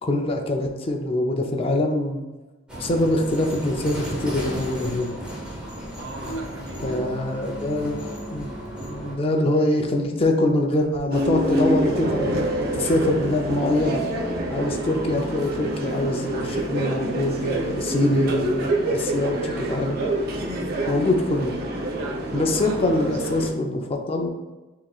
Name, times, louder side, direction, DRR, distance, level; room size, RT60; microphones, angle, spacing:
voice 1, 0.0-2.2 2.8-5.1 6.8-8.0 8.3-8.5 8.8-14.0 14.5-20.0 20.9-21.6 22.3-24.3, left 1 dB, 30° left, 2 dB, 0.5 m, -24 dB
sound 1, 2.7-9.2, right 1 dB, 5° right, 1.1 m, -34 dB
Dog, 3.8-5.3 6.1-8.5, right 1 dB, 80° left, 0.6 m, -42 dB
voice 2, 6.0-7.6 21.9-23.5, right 2 dB, 85° right, 1 dB, 0.9 m, -40 dB
sound 2, 11.1-23.5, right 1 dB, 50° right, 0.7 m, -27 dB
6.7 x 3.0 x 2.4 m, 1.2 s
head